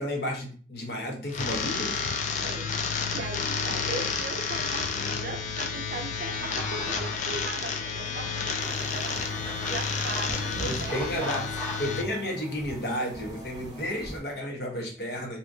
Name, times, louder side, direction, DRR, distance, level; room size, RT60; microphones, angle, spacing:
voice 1, 0.0-2.1 10.4-15.4, equal, 60° left, 1 dB, 0.8 m, -32 dB
sound 1, 1.3-12.0, left 5 dB, 45° left, 0.4 m, -31 dB
voice 2, 2.4-2.7 3.1-11.5 13.5-13.6, right 3 dB, 50° right, 6 dB, 0.5 m, -39 dB
sound 2, 6.4-11.9, equal, 15° left, 0.8 m, -40 dB
sound 3, 8.6-14.2, right 1 dB, 20° right, 0.7 m, -43 dB
2.7 x 2.5 x 3.5 m, 0.41 s
head